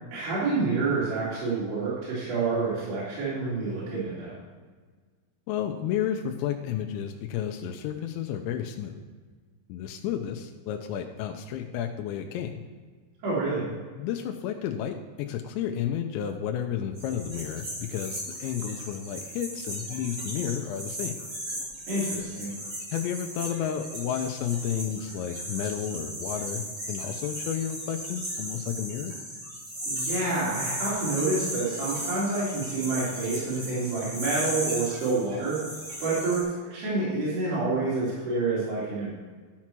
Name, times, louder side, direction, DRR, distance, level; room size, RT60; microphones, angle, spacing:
voice 1, 0.1-4.3 13.2-13.7 21.9-22.6 29.8-35.6 36.0-36.4 36.7-39.1, right 3 dB, 60° right, -10 dB, 4.5 m, -28 dB
voice 2, 5.5-9.0 9.7-12.6 14.0-21.1 22.9-29.1, left 9 dB, 85° left, 4 dB, 2.7 m, -32 dB
sound 1, 17.0-36.4, right 1 dB, 30° right, 3.5 m, -36 dB
12.5 x 6.0 x 4.5 m, 1.5 s
omnidirectional pair, 5.5 m